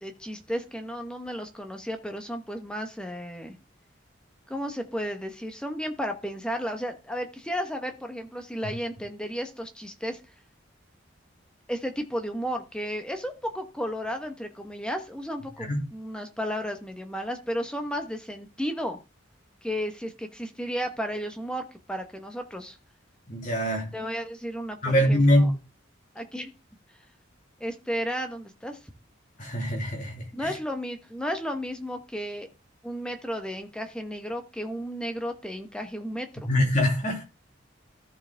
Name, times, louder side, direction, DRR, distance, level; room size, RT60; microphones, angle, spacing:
voice 1, 0.0-3.5 4.5-10.2 11.7-19.0 19.6-22.8 23.9-25.5 26.1-26.5 27.6-28.8 30.3-32.5 32.8-36.5, equal, 5° left, 1.1 m, -33 dB
voice 2, 23.3-23.9 24.8-25.5 29.4-30.5 36.5-37.2, equal, 40° left, 2.8 m, -23 dB
14.5 x 4.8 x 3.4 m
head